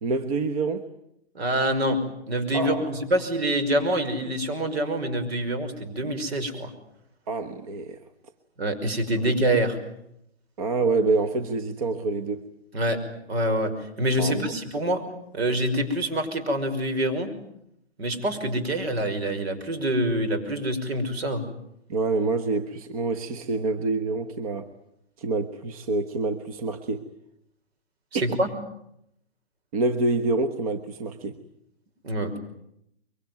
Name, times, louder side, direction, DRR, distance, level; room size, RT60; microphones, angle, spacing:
voice 1, 0.0-0.9 2.5-2.9 7.3-8.0 10.6-12.5 14.2-14.5 21.9-24.7 25.2-27.0 28.1-28.2 29.7-31.4, right 3 dB, 35° right, 9 dB, 1.3 m, -27 dB
voice 2, 1.3-2.0 2.3-6.7 8.6-9.8 12.7-13.0 13.3-13.7 14.0-15.0 15.3-17.3 18.0-21.4 28.1-28.5 32.0-32.4, right 1 dB, 65° right, 10 dB, 5.7 m, -26 dB
24.5 x 23.5 x 9.4 m, 0.77 s
hypercardioid pair, 160°, 33 cm